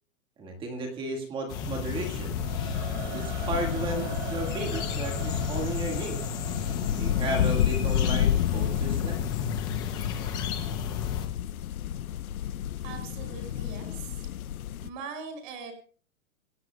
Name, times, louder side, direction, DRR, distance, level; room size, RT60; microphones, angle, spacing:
voice 1, 0.4-2.4 3.0-6.2 7.0-9.2, right 2 dB, 10° right, 3 dB, 1.8 m, -34 dB
sound 1, 1.5-11.3, left 6 dB, 10° left, 0.6 m, -34 dB
sound 2, 1.8-14.9, left 11 dB, 85° left, 0.9 m, -31 dB
Singing / Musical instrument, 2.3-9.4, right 7 dB, 55° right, 5.1 m, -43 dB
voice 2, 12.8-14.3 14.8-15.7, right 5 dB, 35° right, 5 dB, 5.6 m, -41 dB
27.0 x 17.0 x 2.3 m, 0.41 s
hypercardioid pair, 170°, 42 cm